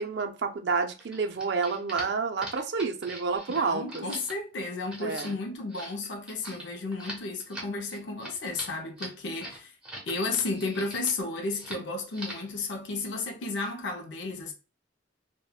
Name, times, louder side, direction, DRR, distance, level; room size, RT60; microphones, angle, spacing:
voice 1, 0.0-4.0 5.0-5.4, right 4 dB, 60° right, 0.4 m, -29 dB
sound 1, 1.0-10.1 10.4-11.2 11.5-11.8 12.1-12.5, right 1 dB, 5° right, 0.7 m, -42 dB
voice 2, 3.5-9.7 10.1-14.5, left 3 dB, 65° left, 0.5 m, -33 dB
3.5 x 2.1 x 2.3 m
head